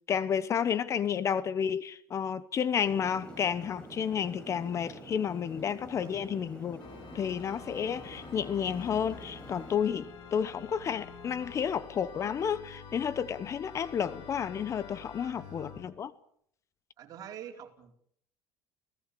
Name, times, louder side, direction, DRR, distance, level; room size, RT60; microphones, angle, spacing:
voice 1, 0.1-6.8 7.1-16.1, left 8 dB, 35° left, 1.0 m, -31 dB
sound 1, 2.8-9.8, right 1 dB, 10° left, 7.7 m, -47 dB
Organ, 6.8-15.9, left 6 dB, 55° left, 4.2 m, -48 dB
voice 2, 15.2-15.8 17.0-17.9, right 9 dB, 50° right, 4.4 m, -47 dB
29.5 x 17.5 x 6.9 m
cardioid pair, 120°, 8 cm